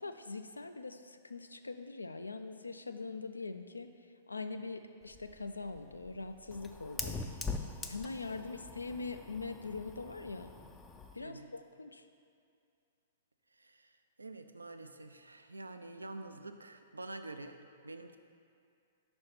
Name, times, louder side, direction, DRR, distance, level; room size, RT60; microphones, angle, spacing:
voice 1, 0.0-7.2 7.8-10.5 11.1-12.0, left 3 dB, 75° left, 8 dB, 0.3 m, -42 dB
Fire, 5.0-11.2, left 4 dB, 10° left, 0.4 m, -43 dB
voice 2, 11.2-11.5 13.5-17.6 17.8-18.2, right 2 dB, 75° right, 7 dB, 0.4 m, -47 dB
5.5 x 4.3 x 5.8 m, 2.4 s
figure-of-eight pair, 110°, 0 cm